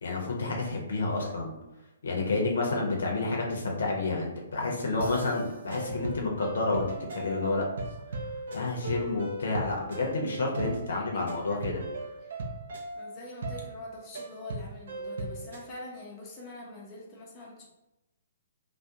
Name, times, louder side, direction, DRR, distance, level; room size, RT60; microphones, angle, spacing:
voice 1, 0.0-1.5 2.0-7.6 8.5-11.8, left 3 dB, 70° left, -1 dB, 0.7 m, -30 dB
sound 1, 5.0-15.7, right 2 dB, 65° right, 0.5 m, -38 dB
voice 2, 10.3-11.7 13.0-17.7, left 2 dB, 25° left, -3 dB, 0.5 m, -45 dB
2.4 x 2.2 x 2.7 m, 0.98 s
figure-of-eight pair, 125°, 0 cm